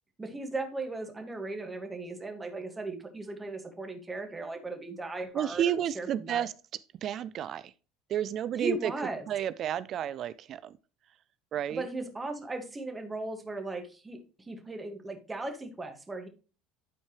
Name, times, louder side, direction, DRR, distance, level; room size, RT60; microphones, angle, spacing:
voice 1, 0.2-6.5 8.6-9.3 11.7-14.2 14.5-16.3, right 2 dB, 15° right, 1.8 m, -37 dB
voice 2, 5.3-6.5 7.0-7.7 8.1-8.9 9.3-10.7 11.5-11.9, right 10 dB, 50° right, 0.4 m, -31 dB
12.0 x 4.4 x 3.2 m
supercardioid pair, 85°, 0 cm